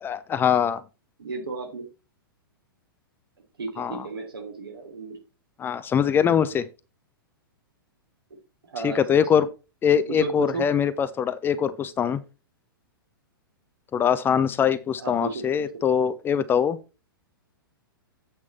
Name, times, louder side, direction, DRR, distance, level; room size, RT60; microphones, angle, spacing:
voice 1, 0.0-0.8 3.8-4.1 5.6-6.7 8.8-9.5 9.8-12.2 13.9-16.8, left 8 dB, 15° left, 0.5 m, -23 dB
voice 2, 1.2-1.9 3.6-5.2 8.7-9.4 10.1-10.6 15.0-15.7, right 4 dB, 75° right, 3.1 m, -34 dB
8.4 x 5.9 x 4.2 m
figure-of-eight pair, 105°, 12 cm